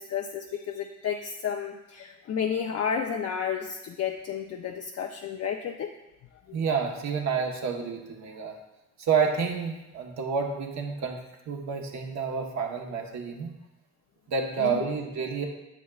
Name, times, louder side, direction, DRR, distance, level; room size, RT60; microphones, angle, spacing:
voice 1, 0.0-5.9, left 7 dB, 55° left, 3 dB, 0.5 m, -31 dB
voice 2, 6.5-8.6 9.0-11.2 11.5-13.5 14.3-15.5, right 5 dB, 65° right, 1 dB, 1.2 m, -29 dB
8.3 x 7.4 x 2.4 m, 0.97 s
cardioid pair, 90°, 30 cm